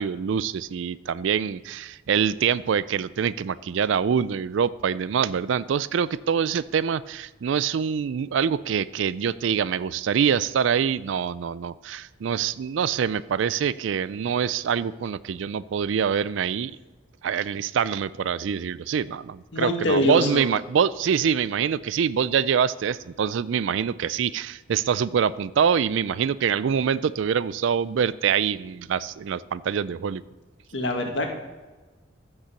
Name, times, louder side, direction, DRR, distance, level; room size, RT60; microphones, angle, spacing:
voice 1, 0.0-16.8 17.2-30.2, right 7 dB, 70° right, 18 dB, 0.4 m, -25 dB
voice 2, 19.5-20.4 30.7-31.3, left 1 dB, 65° left, 3 dB, 1.9 m, -24 dB
14.5 x 5.5 x 6.9 m, 1.2 s
head